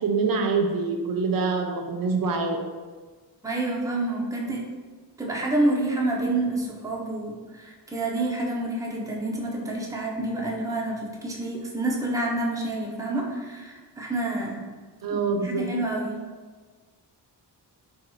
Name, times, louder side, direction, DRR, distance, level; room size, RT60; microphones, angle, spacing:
voice 1, 0.0-2.6 15.0-15.7, right 4 dB, 55° right, 3 dB, 0.5 m, -25 dB
voice 2, 3.4-4.6 5.2-14.6 15.1-16.2, right 2 dB, 10° right, -2 dB, 0.5 m, -28 dB
2.9 x 2.3 x 4.0 m, 1.4 s
wide cardioid pair, 115°, 41 cm